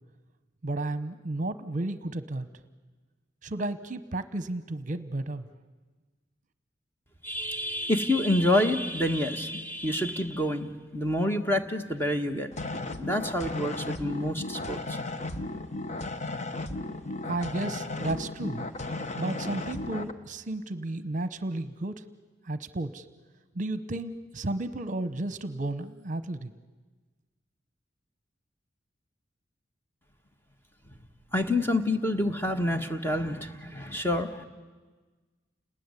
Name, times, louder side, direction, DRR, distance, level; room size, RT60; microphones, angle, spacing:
voice 1, 0.6-2.5 3.4-5.5 17.3-18.7 19.2-22.0 22.4-23.0 23.5-26.5, right 2 dB, 45° right, 12 dB, 1.0 m, -33 dB
voice 2, 7.2-12.5 12.9-15.0 31.3-34.4, left 1 dB, 10° left, 5 dB, 1.5 m, -28 dB
sound 1, 12.5-20.1, left 2 dB, 40° left, 1.2 m, -35 dB
29.5 x 20.0 x 9.8 m, 1.3 s
head